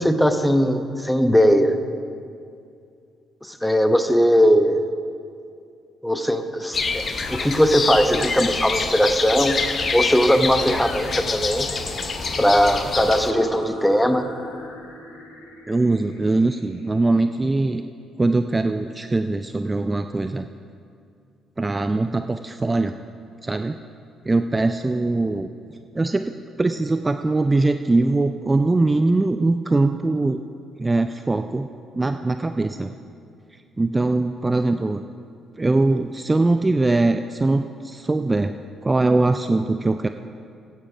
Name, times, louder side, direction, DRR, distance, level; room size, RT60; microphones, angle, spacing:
voice 1, 0.0-1.7 3.4-4.8 6.0-9.7 9.9-11.7 12.4-14.3, equal, 5° left, 8 dB, 1.0 m, -19 dB
sound 1, 6.7-13.3, left 4 dB, 45° left, 0.9 m, -26 dB
sound 2, 7.1-18.0, left 1 dB, 80° left, 1.4 m, -40 dB
voice 2, 15.7-17.8 18.2-20.5 21.6-23.0 23.4-23.8 24.2-25.5 26.0-26.3 26.6-30.4 30.8-31.7 31.9-32.9 33.8-35.0 35.6-38.5 38.8-40.1, right 2 dB, 20° right, 8 dB, 0.4 m, -21 dB
14.0 x 8.8 x 4.9 m, 2.4 s
figure-of-eight pair, 45°, 0 cm